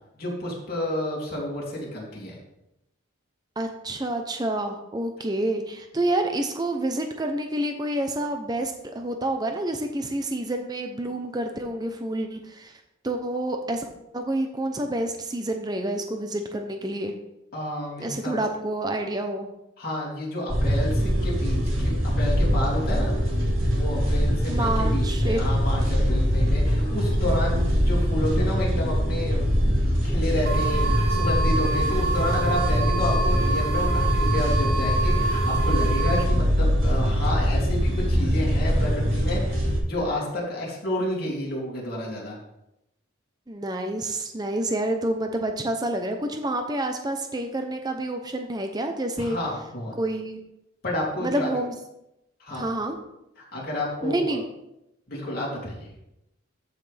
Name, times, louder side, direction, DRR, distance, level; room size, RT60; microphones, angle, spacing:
voice 1, 0.2-2.4 17.5-18.3 19.8-29.4 30.0-42.4 49.2-49.9 50.8-51.5 52.4-52.7 53.4-54.4 55.1-55.9, left 1 dB, 45° left, -5 dB, 3.0 m, -30 dB
voice 2, 3.6-12.7 13.0-13.8 14.1-17.1 18.0-19.5 24.5-25.4 43.5-49.4 50.0-50.4 51.2-51.7 52.5-53.0 54.0-54.4, right 1 dB, 20° right, 5 dB, 0.7 m, -28 dB
sound 1, 20.5-39.8, equal, 80° right, 3.5 m, -23 dB
sound 2, 30.5-36.2, right 3 dB, 50° right, 1.1 m, -28 dB
14.0 x 5.8 x 3.4 m, 0.87 s
head